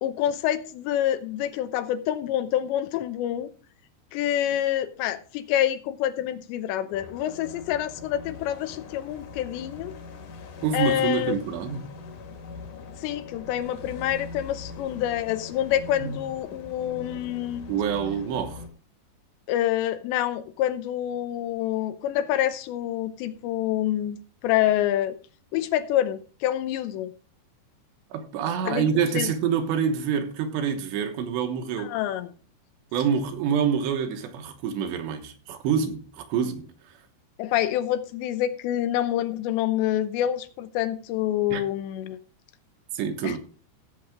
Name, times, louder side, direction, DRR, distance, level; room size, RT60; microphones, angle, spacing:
voice 1, 0.0-3.5 4.1-9.9 10.7-11.4 13.0-17.8 19.5-25.2 25.5-27.1 28.6-28.9 29.1-29.3 31.8-32.3 37.4-42.2 43.2-43.4, left 12 dB, 80° left, 3.0 m, -27 dB
sound 1, 6.9-18.7, left 4 dB, 55° left, 2.9 m, -42 dB
voice 2, 10.6-11.8 16.0-16.2 17.7-18.6 28.1-32.0 32.9-36.7 41.5-41.6 42.9-43.4, right 7 dB, 80° right, 3.4 m, -26 dB
16.5 x 7.5 x 3.6 m
omnidirectional pair, 5.2 m